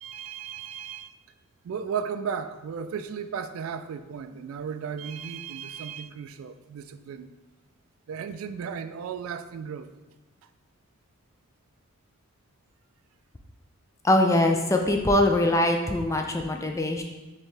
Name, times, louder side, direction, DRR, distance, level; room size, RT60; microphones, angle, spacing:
voice 1, 0.0-1.2 1.6-7.3 8.1-9.9, right 7 dB, 70° right, 12 dB, 0.3 m, -35 dB
voice 2, 14.0-17.0, left 1 dB, 15° left, 4 dB, 0.4 m, -22 dB
4.5 x 3.5 x 3.3 m, 1.1 s
head